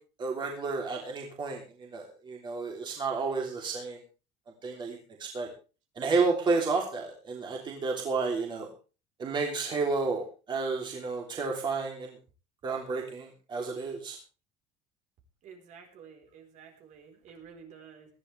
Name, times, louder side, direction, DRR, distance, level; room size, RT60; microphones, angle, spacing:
voice 1, 0.2-4.0 4.6-5.5 5.9-8.7 9.2-12.2 12.6-14.2, right 4 dB, 30° right, 0 dB, 3.2 m, -31 dB
voice 2, 15.4-18.1, right 6 dB, 55° right, 3 dB, 4.1 m, -51 dB
19.0 x 12.5 x 3.4 m, 0.34 s
cardioid pair, 145°, 15 cm